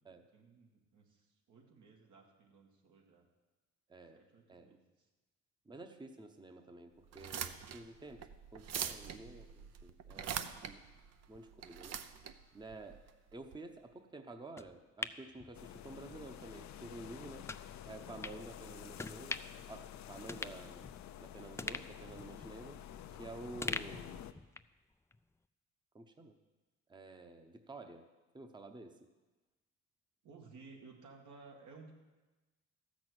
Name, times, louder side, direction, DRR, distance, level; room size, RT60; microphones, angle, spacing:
voice 1, 0.3-3.3 4.1-4.8 10.1-10.5 30.2-32.0, right 4 dB, 75° right, 1 dB, 2.2 m, -57 dB
voice 2, 3.9-4.2 4.5-4.8 5.7-8.3 8.5-10.8 11.3-12.0 12.5-13.0 13.3-17.5 17.9-19.4 19.7-20.9 21.2-22.8 23.1-24.2 25.9-26.3 26.9-28.0 28.3-29.0, right 2 dB, 15° right, 6 dB, 0.9 m, -50 dB
sound 1, 7.1-13.6, right 8 dB, 60° right, 0.7 m, -44 dB
sound 2, 14.6-16.2 16.6-16.7 17.5-17.6 18.2-18.4 19.0-19.6 19.9-20.0 20.3-21.2 21.6-23.2 23.6-24.8 25.1-25.2, left 3 dB, 10° left, 0.3 m, -43 dB
sound 3, 15.5-24.3, left 11 dB, 65° left, 0.6 m, -50 dB
13.5 x 6.2 x 7.8 m, 1.2 s
cardioid pair, 90°, 30 cm